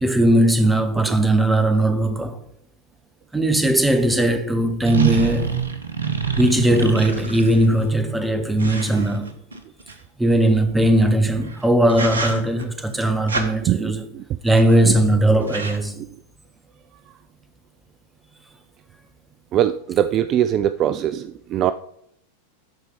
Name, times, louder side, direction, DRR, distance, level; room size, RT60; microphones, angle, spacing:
voice 1, 0.0-2.4 3.3-5.6 6.4-9.3 10.2-14.1 14.4-16.0, right 1 dB, 5° right, 1.0 m, -19 dB
sound 1, 4.9-7.7 8.6-9.9 11.3-11.6 11.9-12.6 13.3-13.5 14.5-14.9 15.1-15.2 15.4-15.8, right 6 dB, 70° right, 1.1 m, -26 dB
voice 2, 13.7-14.2 14.9-15.0 16.0-16.1 19.5-21.7, right 11 dB, 35° right, 0.3 m, -22 dB
12.5 x 4.7 x 4.9 m
figure-of-eight pair, 90°, 0 cm